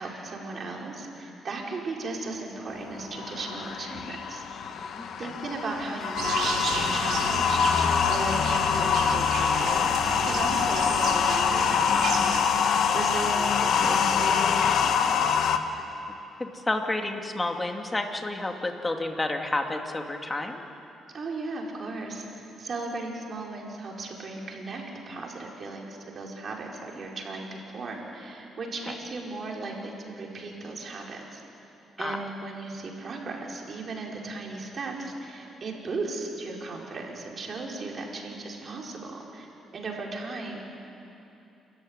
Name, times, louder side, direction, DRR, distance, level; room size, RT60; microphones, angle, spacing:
voice 1, 0.0-4.4 5.2-9.9 10.2-15.1 21.1-31.4 32.0-40.7, right 3 dB, 45° right, -1 dB, 4.9 m, -36 dB
sound 1, 2.8-15.6, left 7 dB, 70° left, 1.3 m, -25 dB
voice 2, 5.0-5.4 16.4-20.6 28.9-29.0 32.0-32.2, left 2 dB, 20° left, 3 dB, 2.4 m, -30 dB
sound 2, 6.1-12.4, right 6 dB, 75° right, 2.7 m, -34 dB
29.5 x 14.0 x 9.8 m, 2.9 s
cardioid pair, 90°, 0 cm